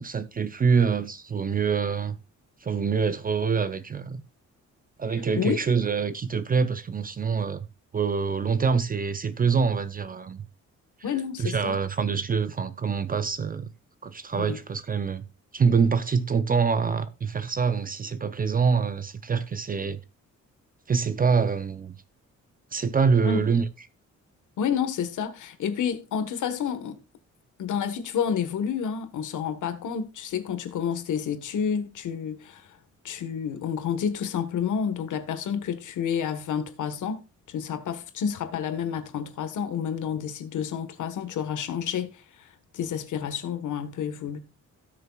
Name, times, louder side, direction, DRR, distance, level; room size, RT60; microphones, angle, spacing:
voice 1, 0.0-2.2 2.6-4.2 5.0-7.7 7.9-10.4 11.4-13.7 14.0-15.3 15.5-20.0 20.9-22.0 22.7-23.6, right 5 dB, 30° right, 0.6 m, -25 dB
voice 2, 5.1-5.6 11.0-11.8 14.3-14.6 23.2-23.5 24.6-27.0 27.6-32.8 33.0-37.2 37.5-44.4, left 7 dB, 80° left, 1.4 m, -30 dB
17.0 x 6.7 x 2.3 m
cardioid pair, 145°, 30 cm